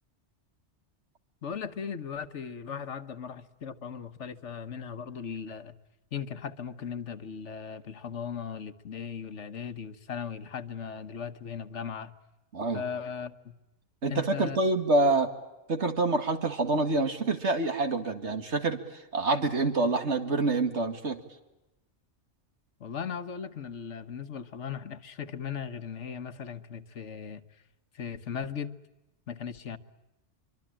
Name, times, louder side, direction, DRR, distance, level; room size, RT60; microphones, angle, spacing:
voice 1, 1.4-5.7 6.1-12.1 12.7-13.5 14.1-14.6 22.8-27.4 27.9-28.8 29.3-29.8, left 7 dB, 85° left, 11 dB, 1.5 m, -38 dB
voice 2, 12.5-12.8 14.0-15.3 15.7-21.2, right 2 dB, 75° right, 7 dB, 2.4 m, -27 dB
25.0 x 24.5 x 8.8 m, 0.98 s
omnidirectional pair, 1.2 m